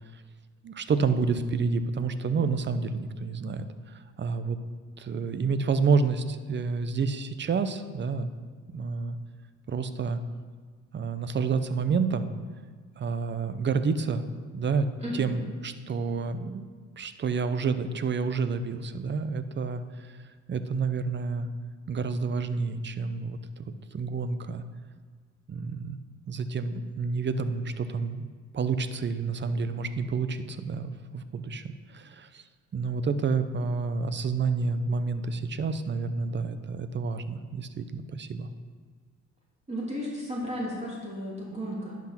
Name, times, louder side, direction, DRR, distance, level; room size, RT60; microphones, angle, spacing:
voice 1, 0.6-3.7 4.2-4.6 5.0-8.3 8.7-9.2 9.7-10.2 10.9-12.3 13.0-14.2 14.5-14.9 15.1-16.7 17.0-20.2 20.5-21.5 21.9-23.6 23.9-24.6 25.5-26.0 26.3-28.2 28.5-32.4 32.7-38.5, right 5 dB, 35° right, 11 dB, 0.7 m, -29 dB
voice 2, 15.0-15.4 39.7-42.0, equal, 20° right, -5 dB, 3.1 m, -34 dB
10.5 x 6.0 x 5.9 m, 1.6 s
cardioid pair, 90°, 30 cm